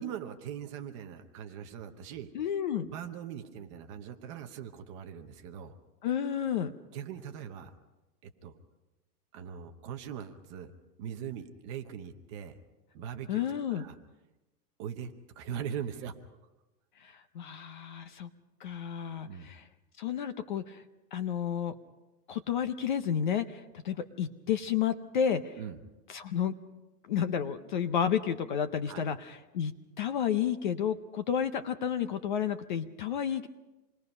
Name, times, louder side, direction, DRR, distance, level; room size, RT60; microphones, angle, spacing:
voice 1, 0.0-2.3 2.7-5.7 6.9-7.7 8.2-8.5 9.3-10.7 11.0-12.6 12.9-14.0 14.8-16.1 19.2-19.5 25.6-25.8 28.9-29.0, right 8 dB, 20° right, 6 dB, 0.8 m, -41 dB
voice 2, 2.3-2.9 6.0-6.7 13.3-13.8 17.0-18.3 18.6-19.6 20.0-20.8 21.1-21.7 22.3-25.5 26.1-26.6 27.0-33.5, left 8 dB, 30° left, 10 dB, 0.6 m, -31 dB
27.5 x 21.0 x 5.4 m, 1.0 s
supercardioid pair, 170°, 48 cm